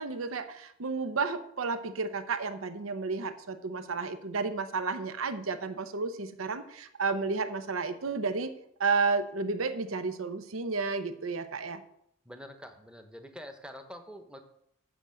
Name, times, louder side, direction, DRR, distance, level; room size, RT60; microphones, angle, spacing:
voice 1, 0.0-8.5 8.8-11.8, right 4 dB, 85° right, 11 dB, 0.7 m, -32 dB
voice 2, 12.3-14.4, equal, 5° right, 6 dB, 0.9 m, -46 dB
7.9 x 6.3 x 7.6 m, 0.72 s
head